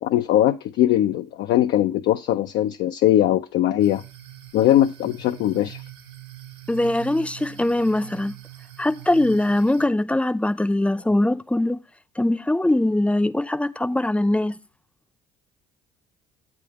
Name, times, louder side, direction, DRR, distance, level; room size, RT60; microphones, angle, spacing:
voice 1, 0.0-4.0 4.5-5.9, left 12 dB, 65° left, 0.5 m, -20 dB
sound 1, 3.8-9.9, right 13 dB, 60° right, 1.2 m, -43 dB
voice 2, 6.7-8.3 8.8-11.8 12.2-14.6, left 1 dB, 5° left, 0.6 m, -22 dB
8.3 x 3.7 x 5.8 m
hypercardioid pair, 55°, 20 cm